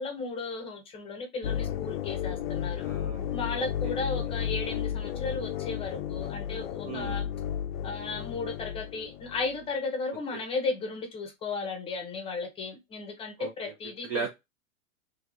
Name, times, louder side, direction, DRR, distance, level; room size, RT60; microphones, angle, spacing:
voice 1, 0.0-2.8 3.3-7.3 7.8-14.3, left 3 dB, 15° left, 0.7 m, -35 dB
sound 1, 1.4-9.5, left 9 dB, 50° left, 0.5 m, -33 dB
voice 2, 2.8-4.0 6.8-7.2 10.3-10.4 13.4-13.7 14.1-14.3, right 5 dB, 30° right, 0.4 m, -37 dB
4.6 x 3.2 x 2.4 m
supercardioid pair, 155°, 40 cm